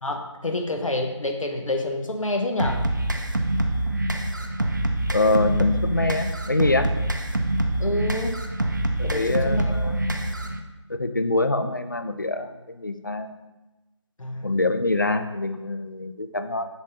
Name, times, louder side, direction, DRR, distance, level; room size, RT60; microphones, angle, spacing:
voice 1, 0.0-2.9 7.8-8.3 9.0-10.0 14.2-14.5, left 2 dB, 90° left, 3 dB, 1.0 m, -28 dB
sound 1, 2.6-10.6, right 1 dB, 40° right, 0.5 m, -25 dB
voice 2, 5.1-6.9 9.1-10.0 10.9-13.3 14.4-16.7, left 2 dB, 40° left, 9 dB, 0.4 m, -25 dB
6.1 x 3.7 x 5.5 m, 1.1 s
figure-of-eight pair, 175°, 16 cm